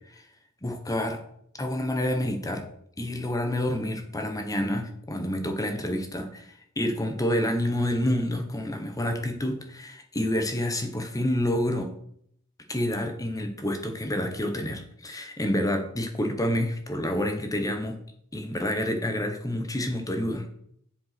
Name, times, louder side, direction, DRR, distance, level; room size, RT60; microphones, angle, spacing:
voice 1, 0.6-1.2 1.6-2.6 3.0-11.9 12.7-18.0 18.3-20.5, left 1 dB, 15° left, 6 dB, 1.3 m, -28 dB
8.1 x 7.0 x 6.0 m, 0.68 s
head